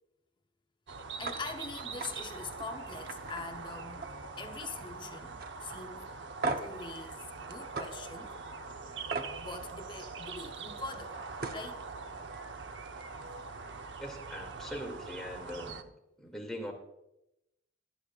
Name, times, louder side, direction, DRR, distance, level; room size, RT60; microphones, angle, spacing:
sound 1, 0.9-15.8, right 4 dB, 75° right, 0.8 m, -43 dB
voice 1, 1.2-4.0 4.4-6.1 6.6-8.3 9.4-11.2 11.5-11.8, left 4 dB, 25° left, 0.9 m, -43 dB
sound 2, 1.2-1.4 1.8-2.1 2.5-2.7 3.1-4.3 4.5-5.0 5.4-5.5 6.4-6.8 7.7-7.9 9.1-9.3 11.0-11.1 11.4-11.7, right 3 dB, 50° right, 1.0 m, -36 dB
voice 2, 14.0-15.9 16.2-16.7, equal, ahead, 2.5 m, -41 dB
23.0 x 9.7 x 2.5 m
head